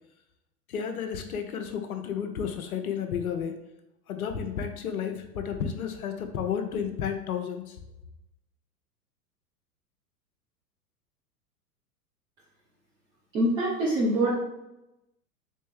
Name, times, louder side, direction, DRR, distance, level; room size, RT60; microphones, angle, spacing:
voice 1, 0.7-3.6 4.1-7.8, left 7 dB, 60° left, 6 dB, 0.8 m, -32 dB
voice 2, 13.3-14.3, right 1 dB, 10° right, -8 dB, 0.3 m, -24 dB
4.3 x 3.6 x 3.3 m, 0.91 s
figure-of-eight pair, 95°, 49 cm